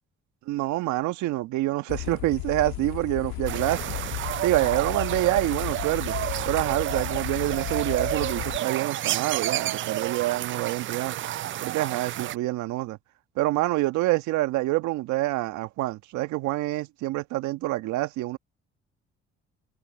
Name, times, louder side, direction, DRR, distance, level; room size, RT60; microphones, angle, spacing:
voice 1, 0.5-3.9 4.4-6.1 6.4-11.2 11.6-13.0 13.4-18.4, right 17 dB, 75° right, 1.5 m, -27 dB
sound 1, 1.9-8.6, left 24 dB, 80° left, 2.3 m, -34 dB
sound 2, 3.5-12.4, right 13 dB, 45° right, 0.4 m, -30 dB
hypercardioid pair, 60°, 30 cm